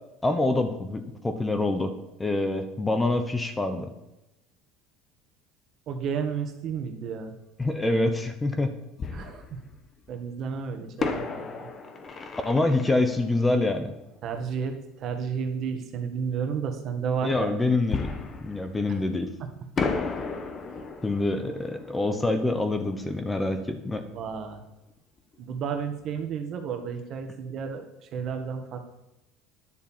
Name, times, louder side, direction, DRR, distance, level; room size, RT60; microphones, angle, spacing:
voice 1, 0.2-1.9 2.2-3.9 7.6-8.7 12.4-13.9 17.2-18.1 18.4-19.3 21.0-24.0, left 2 dB, 15° left, 8 dB, 1.1 m, -26 dB
voice 2, 5.9-7.3 9.1-9.6 10.1-11.7 14.2-14.7 15.0-17.5 19.4-19.5 24.1-24.6 25.4-27.8 28.1-28.8, right 6 dB, 45° right, 6 dB, 1.7 m, -32 dB
Fireworks, 7.7-7.8 9.0-10.1 11.0-14.5 17.9-19.3 19.8-24.3 24.6-24.7 25.2-25.4, left 4 dB, 30° left, 1.3 m, -35 dB
10.5 x 6.7 x 7.4 m, 0.91 s
supercardioid pair, 115°, 0 cm